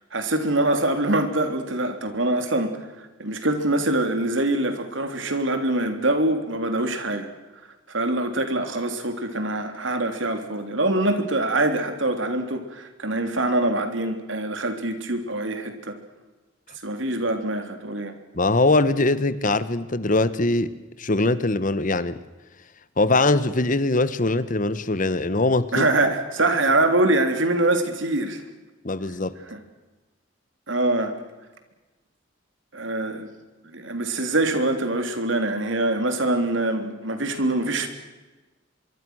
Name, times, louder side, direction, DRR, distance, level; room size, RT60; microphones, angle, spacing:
voice 1, 0.1-7.3 7.9-16.0 16.8-18.1 25.7-28.4 29.5-29.6 30.7-31.2 32.7-33.3 33.7-37.9, right 2 dB, 85° right, 7 dB, 3.4 m, -24 dB
voice 2, 18.3-20.7 21.0-22.2 23.0-25.9 28.8-29.4, left 2 dB, 45° left, 14 dB, 1.2 m, -22 dB
24.5 x 23.5 x 6.4 m, 1.2 s
head